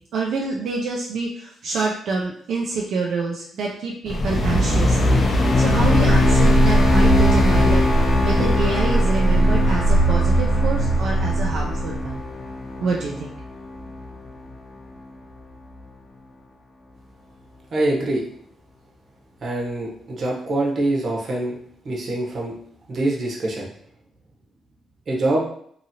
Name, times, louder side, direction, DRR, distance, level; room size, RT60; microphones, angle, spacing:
voice 1, 0.1-5.0 5.6-12.2 12.8-13.3, right 3 dB, 70° right, -2 dB, 0.4 m, -27 dB
sound 1, 4.1-14.5, left 2 dB, 40° left, 0.6 m, -21 dB
sound 2, 5.6-12.2, right 2 dB, 80° left, 0.6 m, -20 dB
voice 2, 17.7-18.2 19.4-21.6 21.8-22.5 22.9-23.7 25.1-25.4, right 2 dB, 45° right, -2 dB, 0.9 m, -24 dB
2.8 x 2.7 x 2.7 m, 0.64 s
cardioid pair, 125°, 0 cm